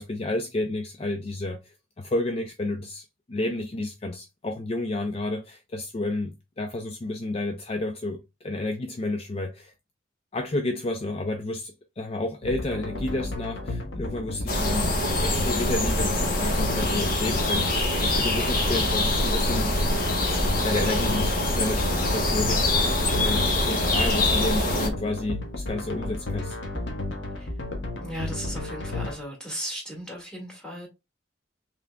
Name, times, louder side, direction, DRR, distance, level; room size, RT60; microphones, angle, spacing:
voice 1, 0.0-9.7 10.3-14.9 15.2-19.7 20.3-26.6, left 2 dB, 35° left, 0.4 m, -31 dB
sound 1, 12.4-29.1, left 2 dB, 90° left, 1.2 m, -33 dB
sound 2, 14.5-24.9, left 1 dB, 50° left, 1.1 m, -24 dB
voice 2, 28.0-30.9, equal, 5° left, 2.0 m, -36 dB
5.6 x 3.7 x 2.3 m
head